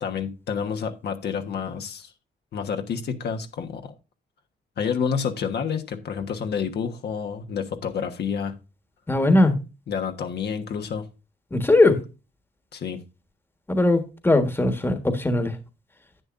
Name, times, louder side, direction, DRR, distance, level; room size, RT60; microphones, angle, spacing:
voice 1, 0.0-2.1 2.5-3.9 4.8-8.5 9.9-11.1 12.7-13.0, left 6 dB, 65° left, 1.3 m, -29 dB
voice 2, 9.1-9.6 11.5-12.0 13.7-15.5, left 2 dB, 10° left, 1.4 m, -19 dB
10.5 x 9.1 x 2.6 m
cardioid pair, 120°, 18 cm